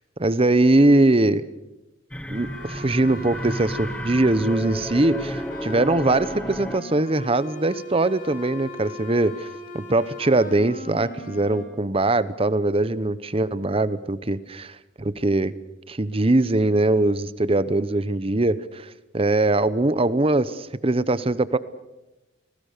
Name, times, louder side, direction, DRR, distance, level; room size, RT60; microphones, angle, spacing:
voice 1, 0.2-1.4 2.3-9.5 9.7-14.7 15.0-15.5 15.9-21.6, right 2 dB, 30° right, 15 dB, 0.9 m, -21 dB
sound 1, 2.1-7.0, equal, 5° left, 1.0 m, -33 dB
sound 2, 2.3-11.6, equal, 50° left, 4.1 m, -39 dB
29.0 x 19.5 x 6.7 m, 1.0 s
head